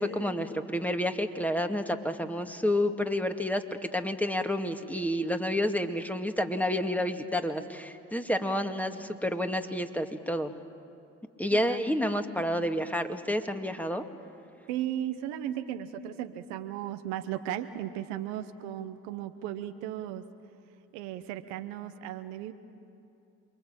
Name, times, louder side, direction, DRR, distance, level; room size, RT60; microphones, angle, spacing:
voice 1, 0.0-3.6 3.9-10.5 11.4-14.0, left 1 dB, 5° left, 6 dB, 2.1 m, -29 dB
voice 2, 14.7-20.2 20.9-22.5, right 11 dB, 85° right, 9 dB, 1.0 m, -36 dB
27.5 x 22.5 x 8.9 m, 2.7 s
hypercardioid pair, 45°, 33 cm